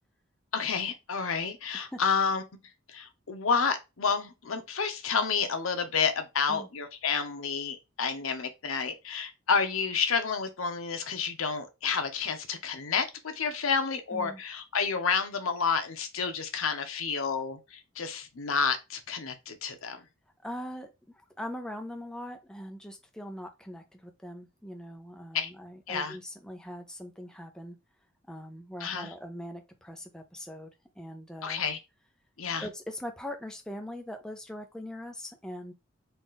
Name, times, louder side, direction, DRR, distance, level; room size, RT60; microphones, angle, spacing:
voice 1, 0.5-2.4 2.9-20.0 25.3-25.5 25.9-26.2 28.8-29.1 31.4-31.8 32.4-32.7, left 5 dB, 90° left, 0.8 m, -30 dB
voice 2, 20.4-27.8 28.3-30.7 31.0-31.6 32.6-35.7, equal, 5° left, 0.5 m, -41 dB
4.0 x 2.4 x 3.7 m
head